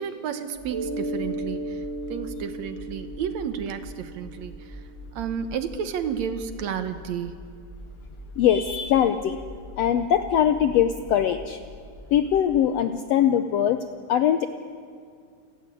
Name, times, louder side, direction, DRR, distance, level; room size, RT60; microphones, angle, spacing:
voice 1, 0.0-4.9 5.2-7.5, right 7 dB, 70° right, 9 dB, 2.0 m, -32 dB
sound 1, 0.5-12.6, equal, 10° left, 1.0 m, -44 dB
Mallet percussion, 0.7-5.1, right 2 dB, 40° right, 2.6 m, -35 dB
voice 2, 8.4-9.4 9.8-11.6 12.1-14.5, left 9 dB, 75° left, 9 dB, 1.5 m, -22 dB
29.0 x 13.5 x 9.9 m, 2.2 s
omnidirectional pair, 3.7 m